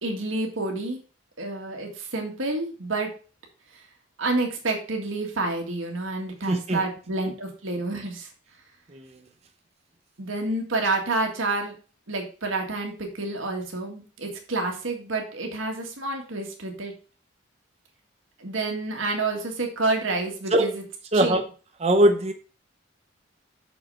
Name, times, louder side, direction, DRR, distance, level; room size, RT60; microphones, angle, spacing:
voice 1, 0.0-1.0 1.4-3.1 3.7-3.8 4.2-8.3 10.2-11.8 12.1-16.9 18.4-20.8 21.1-21.4, right 2 dB, 80° right, 1.9 m, -29 dB
voice 2, 6.5-6.8 8.9-9.0 20.5-20.7 21.1-21.4 21.8-22.3, right 1 dB, 30° right, 0.7 m, -20 dB
6.2 x 5.9 x 5.5 m
head